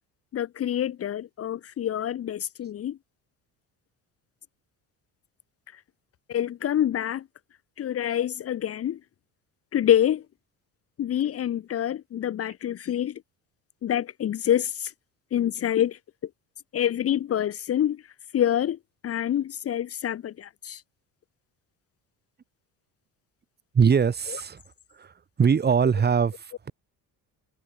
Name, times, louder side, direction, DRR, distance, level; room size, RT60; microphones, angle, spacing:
voice 1, 0.3-3.0 6.3-7.2 7.8-9.0 9.7-10.2 11.0-13.1 13.8-14.9 15.3-16.0 16.7-18.0 18.3-18.8 19.0-20.8, left 10 dB, 40° left, 1.5 m, -26 dB
voice 2, 23.7-24.6 24.9-26.7, right 6 dB, 25° right, 6.7 m, -22 dB
cardioid pair, 155°, 36 cm